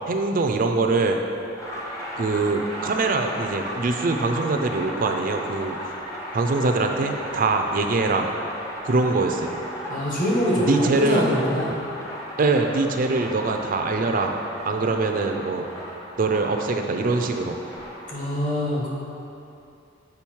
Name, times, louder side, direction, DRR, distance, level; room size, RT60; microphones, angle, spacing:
voice 1, 0.1-1.2 2.2-5.8 6.3-8.3 8.8-9.5 10.6-11.3 12.4-14.3 14.6-15.6 16.2-17.6, right 3 dB, 45° right, 4 dB, 0.4 m, -23 dB
sound 1, 1.6-18.1, equal, 15° left, 1.0 m, -36 dB
voice 2, 9.9-10.7 11.0-11.7 18.1-18.9, left 1 dB, 45° left, -5 dB, 1.6 m, -24 dB
7.0 x 5.0 x 4.5 m, 2.8 s
head